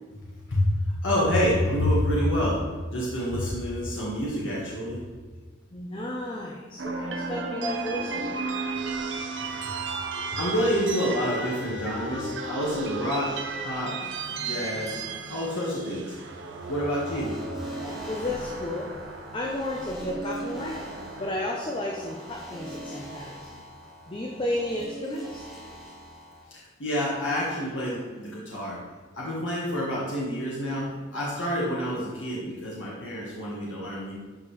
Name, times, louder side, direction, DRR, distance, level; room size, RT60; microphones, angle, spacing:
voice 1, 1.0-2.6 2.9-5.0 9.5-9.8 10.3-13.3 13.6-14.0 14.4-14.9 15.3-16.2 16.7-17.3 26.5-28.8 29.2-34.1, equal, 85° left, -5 dB, 1.6 m, -28 dB
voice 2, 5.7-8.4 18.1-18.9 19.3-20.8 21.2-23.4 24.1-25.5, left 1 dB, 25° left, -2 dB, 0.7 m, -32 dB
sound 1, 6.8-23.0, right 3 dB, 75° right, 0.8 m, -35 dB
sound 2, 16.6-26.4, right 1 dB, ahead, 1.6 m, -41 dB
12.0 x 5.1 x 3.3 m, 1.4 s
head